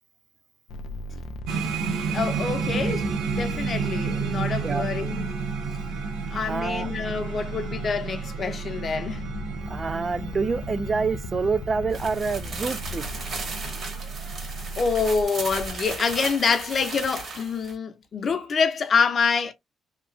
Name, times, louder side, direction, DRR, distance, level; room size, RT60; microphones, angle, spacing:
sound 1, 0.7-15.2, right 1 dB, 80° left, 0.3 m, -37 dB
sound 2, 1.5-14.8, right 5 dB, 85° right, 0.7 m, -32 dB
voice 1, 2.1-5.2 6.3-9.3 14.8-19.5, left 5 dB, 50° left, 0.6 m, -26 dB
voice 2, 6.5-6.9 9.7-13.0, right 4 dB, 35° right, 0.3 m, -27 dB
sound 3, 11.9-17.7, right 3 dB, 55° right, 1.4 m, -35 dB
2.9 x 2.2 x 2.5 m
cardioid pair, 90°, 0 cm